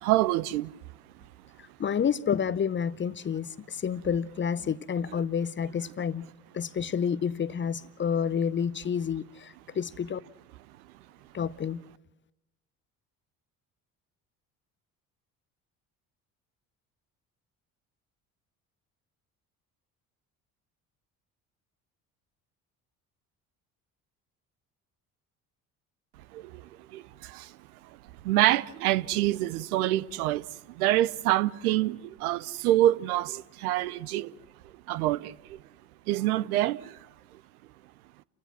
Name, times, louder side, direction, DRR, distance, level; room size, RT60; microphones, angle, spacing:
voice 1, 0.0-0.7 26.3-27.5 28.2-34.3 34.9-35.6 36.1-37.1, right 15 dB, 75° right, 0.6 m, -26 dB
voice 2, 1.8-6.3 6.5-10.2 11.3-11.8, left 7 dB, 25° left, 0.6 m, -29 dB
30.0 x 16.0 x 6.1 m
hypercardioid pair, 55°, 44 cm